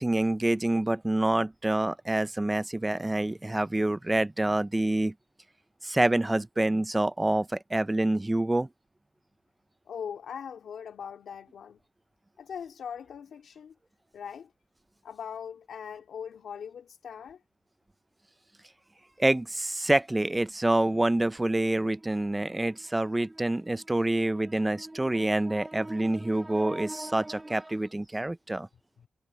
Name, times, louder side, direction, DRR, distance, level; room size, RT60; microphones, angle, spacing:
voice 1, 0.0-5.1 5.8-8.7 19.2-28.7, right 1 dB, 15° right, 0.5 m, -27 dB
voice 2, 9.9-11.8 12.4-13.7 14.1-14.5 15.0-17.4, left 7 dB, 90° left, 2.4 m, -40 dB
wide cardioid pair, 100°, 0 cm